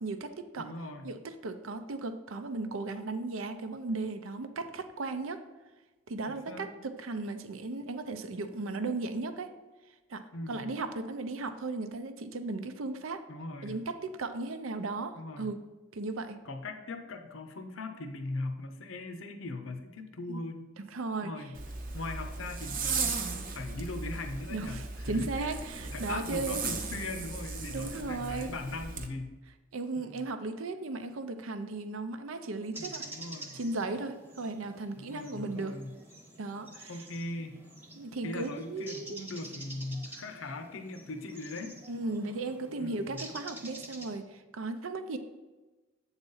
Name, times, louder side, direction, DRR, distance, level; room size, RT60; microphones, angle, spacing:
voice 1, 0.0-0.7 1.0-5.4 6.1-9.5 10.1-10.2 10.5-13.2 13.6-15.6 15.9-16.4 20.3-20.4 20.9-21.3 24.5-26.7 27.7-28.5 29.7-33.1 33.5-35.7 36.4-37.0 38.0-39.2 41.9-45.2, right 3 dB, 80° right, 9 dB, 0.6 m, -36 dB
voice 2, 0.6-1.1 6.3-6.7 10.3-10.7 13.3-13.8 15.1-15.5 16.4-20.6 21.2-21.6 21.9-25.6 25.9-29.4 30.0-30.2 32.8-33.6 35.0-35.9 36.9-37.6 38.2-41.8 42.8-43.2, left 2 dB, 70° left, 6 dB, 0.7 m, -40 dB
Zipper (clothing), 21.5-29.1, right 4 dB, 40° right, 0.7 m, -37 dB
sound 1, 32.7-44.2, right 1 dB, 10° right, 1.0 m, -48 dB
8.1 x 4.0 x 5.5 m, 1.1 s
head